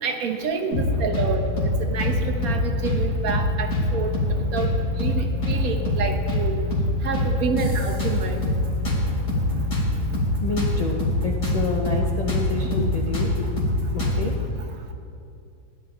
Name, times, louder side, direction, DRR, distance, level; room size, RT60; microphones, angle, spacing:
voice 1, 0.0-1.5 1.8-4.7 5.0-6.6 7.0-8.4 9.5-9.6 9.9-10.0 12.6-12.7, right 5 dB, 65° right, 4 dB, 1.2 m, -28 dB
sound 1, 0.7-1.3 1.6-1.7 2.0-3.0 3.3-3.4 3.7-4.7 5.0-5.2 5.4-6.4 6.7-6.9 7.1-8.6 8.8-11.6 11.8-12.0 12.3-14.3, left 1 dB, 85° left, 3.3 m, -24 dB
voice 2, 10.4-13.6 13.9-14.4, left 3 dB, 55° left, -1 dB, 0.4 m, -29 dB
15.5 x 11.0 x 2.3 m, 2.6 s
omnidirectional pair, 1.8 m